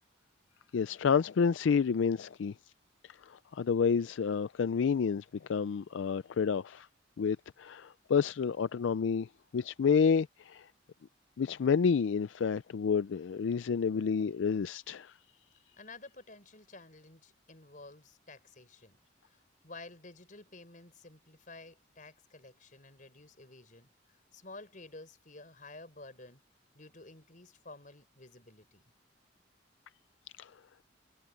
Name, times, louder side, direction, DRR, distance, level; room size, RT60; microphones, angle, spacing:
voice 1, 0.7-2.5 3.0-6.9 7.2-10.7 11.4-15.1 30.4-30.5, left 6 dB, 75° left, 0.4 m, -29 dB
voice 2, 15.8-19.0 19.3-23.9 24.3-26.4 26.7-28.8, left 2 dB, 45° left, 4.6 m, -52 dB
head